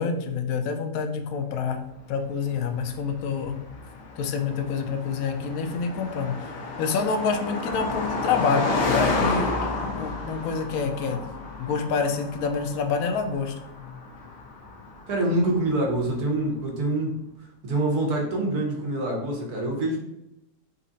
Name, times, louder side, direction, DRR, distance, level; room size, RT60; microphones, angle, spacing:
voice 1, 0.0-1.8 2.1-3.6 4.2-9.5 10.0-11.2 11.6-13.5, left 5 dB, 70° left, 6 dB, 1.0 m, -27 dB
Car passing by, 2.3-16.1, left 3 dB, 90° left, 1.3 m, -31 dB
voice 2, 15.1-17.2 17.6-20.0, right 1 dB, 80° right, 0 dB, 1.6 m, -25 dB
4.1 x 2.5 x 3.9 m, 0.85 s
omnidirectional pair, 1.6 m